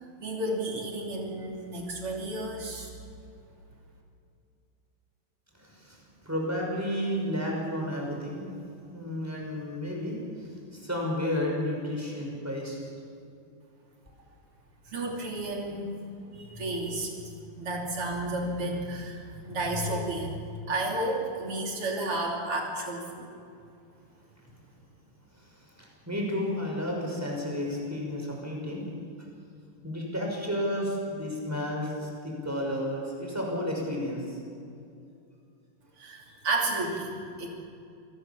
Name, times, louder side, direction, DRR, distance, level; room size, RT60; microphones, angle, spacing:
voice 1, 0.2-2.9 14.9-17.1 17.6-23.3 36.0-37.5, right 2 dB, 85° right, 0 dB, 4.0 m, -32 dB
voice 2, 5.6-6.0 6.2-8.5 8.9-12.9 25.3-28.8 29.2-29.3 29.8-34.4, left 1 dB, 5° right, -1 dB, 5.8 m, -32 dB
26.5 x 19.5 x 7.3 m, 2.5 s
omnidirectional pair, 2.4 m